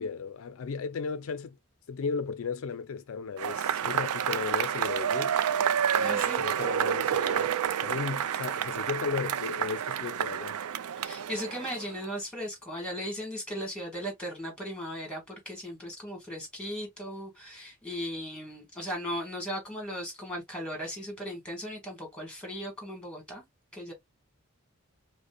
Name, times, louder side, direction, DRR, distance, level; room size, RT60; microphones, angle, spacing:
voice 1, 0.0-1.6 1.9-5.4 6.0-7.5 7.8-10.6, left 5 dB, 65° left, 0.4 m, -35 dB
Cheering / Applause / Crowd, 3.4-12.0, right 8 dB, 85° right, 0.4 m, -29 dB
voice 2, 6.0-6.4 11.0-23.4 23.7-23.9, equal, 5° left, 1.4 m, -37 dB
5.0 x 2.1 x 2.2 m
head